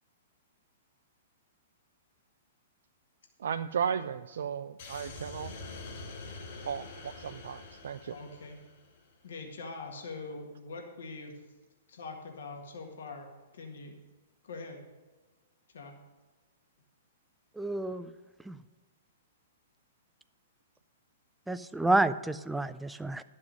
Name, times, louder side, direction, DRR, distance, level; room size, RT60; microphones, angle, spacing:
voice 1, 3.4-5.5 6.6-8.2, right 7 dB, 75° right, 9 dB, 0.4 m, -35 dB
sound 1, 4.8-9.1, left 3 dB, 60° left, 3.4 m, -45 dB
voice 2, 8.1-8.6 9.2-11.4 11.9-13.3 13.5-14.0 14.4-14.8 15.7-16.0, left 3 dB, 80° left, 2 dB, 1.8 m, -43 dB
voice 3, 17.6-18.1 18.5-18.6 21.5-23.2, right 2 dB, 5° right, 11 dB, 0.4 m, -29 dB
11.5 x 7.4 x 6.2 m, 1.2 s
hypercardioid pair, 130°, 0 cm